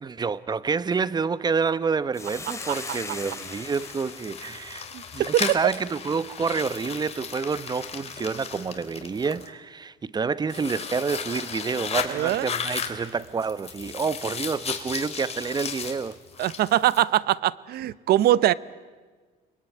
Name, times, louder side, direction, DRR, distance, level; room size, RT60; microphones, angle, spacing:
voice 1, 0.0-4.9 5.1-16.2, right 5 dB, 25° right, 0.9 m, -28 dB
Hiss, 2.1-6.6, left 3 dB, 15° left, 3.2 m, -41 dB
sound 1, 2.2-9.5 10.5-17.0, left 6 dB, 40° left, 3.2 m, -35 dB
voice 2, 12.1-12.5 16.4-18.5, right 13 dB, 70° right, 0.8 m, -22 dB
29.5 x 22.0 x 9.1 m
cardioid pair, 110°, 17 cm